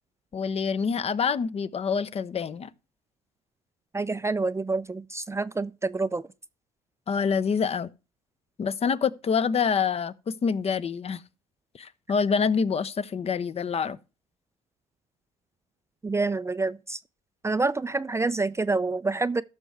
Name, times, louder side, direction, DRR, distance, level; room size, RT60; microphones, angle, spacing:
voice 1, 0.3-2.7 7.1-7.9 8.6-11.2 11.7-14.0, left 6 dB, 35° left, 0.7 m, -26 dB
voice 2, 3.9-6.2 16.0-17.0 17.4-19.4, right 3 dB, 15° right, 0.5 m, -27 dB
14.5 x 6.2 x 3.4 m
hypercardioid pair, 60°, 17 cm